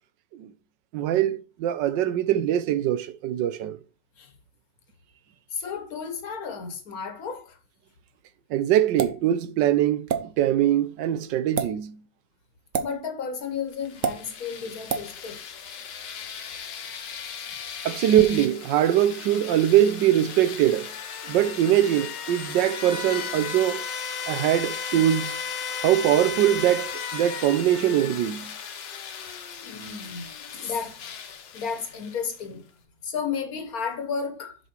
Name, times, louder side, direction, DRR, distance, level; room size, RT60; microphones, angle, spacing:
voice 1, 0.9-3.8 8.5-10.1 10.4-12.0 17.8-20.9 21.3-23.8 24.3-25.4 25.8-28.5, right 11 dB, 80° right, 1.3 m, -22 dB
voice 2, 5.5-7.6 12.8-15.4 29.6-30.3 30.5-31.0 31.5-32.6 33.0-34.6, left 6 dB, 55° left, 1.6 m, -33 dB
sound 1, 9.0-9.2 10.1-10.2 11.4-11.7 12.7-12.9 14.0-14.2 14.9-15.1, right 7 dB, 50° right, 1.1 m, -26 dB
sound 2, 13.7-32.4, left 7 dB, 75° left, 1.7 m, -36 dB
7.4 x 5.4 x 4.4 m
omnidirectional pair, 1.9 m